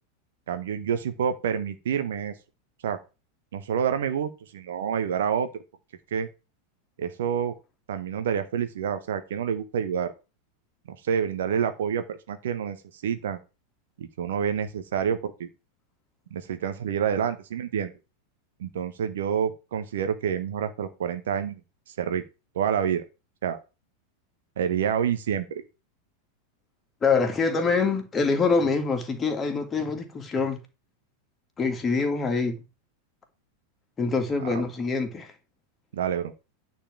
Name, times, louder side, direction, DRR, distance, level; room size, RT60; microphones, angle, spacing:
voice 1, 0.5-2.3 2.8-3.0 3.5-5.5 6.1-6.3 7.0-7.5 7.9-10.1 10.9-12.8 13.0-13.4 14.0-15.5 16.3-17.9 18.6-21.6 22.0-22.2 22.5-23.0 23.4-23.6 24.6-25.5 34.4-34.6 35.9-36.3, right 8 dB, 60° right, 1.3 m, -28 dB
voice 2, 27.0-30.6 31.6-32.6 34.0-35.3, left 4 dB, 20° left, 2.7 m, -25 dB
10.0 x 4.6 x 7.5 m
figure-of-eight pair, 90°, 0 cm